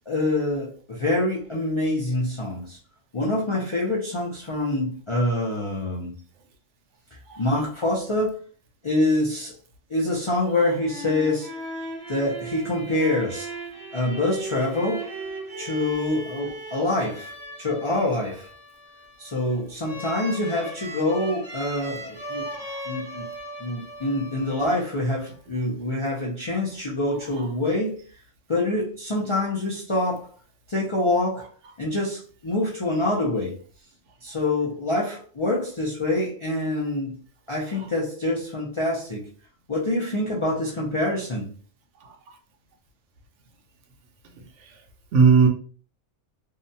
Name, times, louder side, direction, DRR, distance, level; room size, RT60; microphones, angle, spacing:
voice 1, 0.1-2.8 3.1-6.2 7.4-8.4 8.8-9.5 9.9-11.5 12.1-13.5 13.9-15.1 15.6-17.3 17.6-18.5 19.2-22.5 22.9-23.2 23.6-28.0 28.5-30.3 30.7-31.5 31.8-33.5 34.2-37.2 37.5-39.3 39.7-41.5, left 2 dB, 40° left, 0.4 m, -26 dB
sound 1, 10.6-25.2, right 1 dB, 35° right, 0.7 m, -37 dB
voice 2, 22.5-22.9 45.1-45.5, right 5 dB, 75° right, 0.9 m, -18 dB
2.7 x 2.2 x 2.6 m
omnidirectional pair, 1.3 m